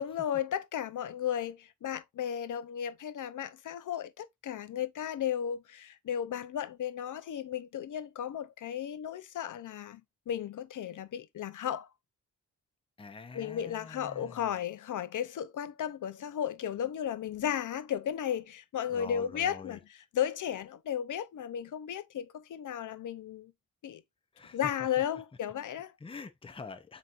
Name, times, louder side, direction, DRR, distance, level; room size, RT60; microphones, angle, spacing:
voice 1, 0.0-10.0 10.3-11.9 13.3-19.8 20.1-23.5 23.8-24.0 24.5-25.9, left 9 dB, 75° left, 0.5 m, -34 dB
voice 2, 13.0-14.5 18.9-19.8 24.3-25.1 26.0-27.0, left 4 dB, 20° left, 0.5 m, -45 dB
7.6 x 2.8 x 2.4 m
wide cardioid pair, 175°, 31 cm